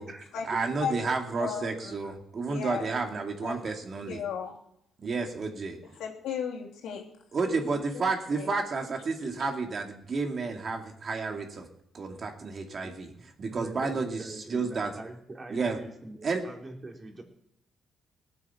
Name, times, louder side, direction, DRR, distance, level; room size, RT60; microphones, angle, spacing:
voice 1, 0.5-4.2 5.0-5.8 7.3-11.7 11.9-13.1 13.4-14.2 14.5-14.9 15.5-15.8 16.2-16.4, right 4 dB, 45° right, 3 dB, 2.6 m, -31 dB
voice 2, 1.4-2.1 2.4-2.9 3.4-3.6 4.1-4.6 5.9-7.1 7.9-8.0 8.4-8.5, left 7 dB, 90° left, -1 dB, 3.2 m, -35 dB
voice 3, 13.4-17.2, right 2 dB, 30° right, 1 dB, 3.5 m, -43 dB
18.5 x 9.2 x 7.4 m, 0.74 s
cardioid pair, 90°, 0 cm